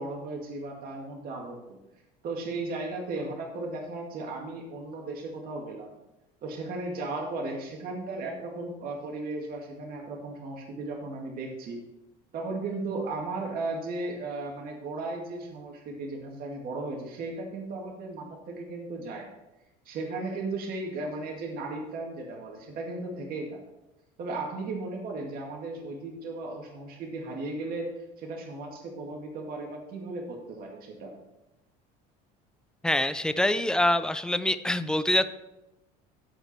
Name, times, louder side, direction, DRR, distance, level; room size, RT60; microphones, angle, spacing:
voice 1, 0.0-1.8 2.2-5.9 6.4-11.8 12.3-19.3 19.9-23.6 24.2-27.9 28.2-31.1, right 2 dB, 50° right, 0 dB, 2.1 m, -36 dB
voice 2, 32.8-35.3, left 1 dB, 5° left, 12 dB, 0.4 m, -25 dB
14.5 x 5.0 x 4.3 m, 0.94 s
supercardioid pair, 120°, 19 cm